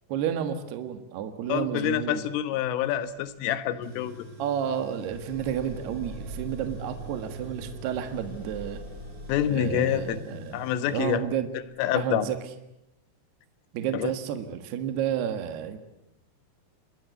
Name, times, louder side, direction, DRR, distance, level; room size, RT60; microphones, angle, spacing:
voice 1, 0.1-2.2 4.4-8.8 9.5-11.5 11.9-12.4 13.7-15.8, right 9 dB, 65° right, 8 dB, 3.4 m, -31 dB
voice 2, 1.5-4.3 9.3-10.2 10.5-11.2 11.8-12.3 13.9-14.1, left 11 dB, 90° left, 12 dB, 3.9 m, -27 dB
sound 1, 2.9-11.8, right 1 dB, 5° right, 7.6 m, -45 dB
Tools, 3.8-11.1, right 1 dB, 25° right, 2.0 m, -44 dB
29.5 x 21.0 x 8.3 m, 0.85 s
omnidirectional pair, 5.6 m